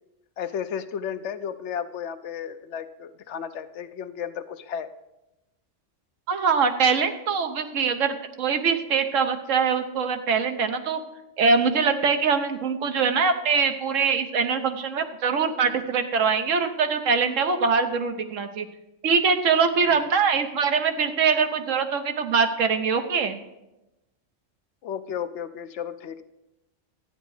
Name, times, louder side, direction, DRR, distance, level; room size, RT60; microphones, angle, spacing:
voice 1, 0.4-4.9 19.9-20.0 24.8-26.2, left 8 dB, 70° left, 11 dB, 0.9 m, -33 dB
voice 2, 6.3-11.0 11.4-18.7 19.0-23.4, right 5 dB, 80° right, 7 dB, 1.2 m, -23 dB
12.5 x 9.0 x 4.8 m, 0.96 s
omnidirectional pair, 1.3 m